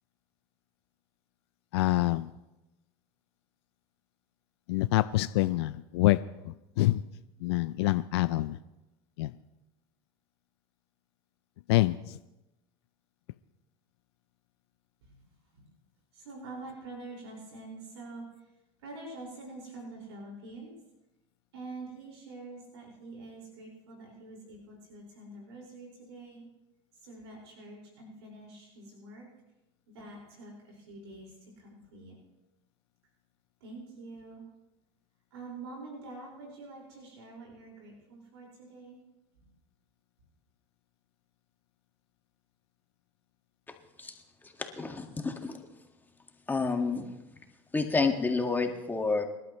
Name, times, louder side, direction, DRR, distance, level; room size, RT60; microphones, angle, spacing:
voice 1, 1.7-2.3 4.7-6.2 6.5-7.0 7.4-8.6 9.2-9.3 11.7-12.2, left 18 dB, 80° left, 13 dB, 0.4 m, -26 dB
voice 2, 16.1-18.5 18.8-20.8 21.5-26.5 26.9-29.3 29.9-32.2 33.6-34.4 35.3-39.0 39.4-39.5, right 2 dB, 90° right, -1 dB, 5.1 m, -46 dB
voice 3, 44.4-45.6 46.5-47.1 47.7-49.2, left 4 dB, 15° left, 3 dB, 1.8 m, -29 dB
25.0 x 12.0 x 3.1 m, 0.98 s
supercardioid pair, 95°, 14 cm